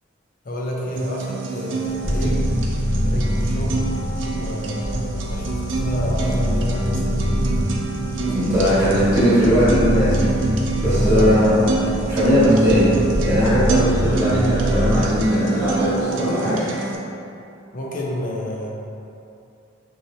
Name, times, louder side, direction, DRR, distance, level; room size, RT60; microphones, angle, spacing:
voice 1, 0.4-2.3 3.0-3.8 4.4-7.6 8.2-9.2 10.9-11.3 11.8-12.1 17.7-18.7, left 1 dB, 45° left, -3 dB, 0.6 m, -30 dB
sound 1, 1.0-17.0, right 3 dB, 75° right, 0.5 m, -26 dB
sound 2, 1.9-15.2, equal, 5° left, 0.7 m, -24 dB
voice 2, 8.2-10.2 10.8-11.6 12.1-12.8 13.2-16.7, equal, 20° right, -13 dB, 1.4 m, -19 dB
4.0 x 3.2 x 2.7 m, 2.7 s
head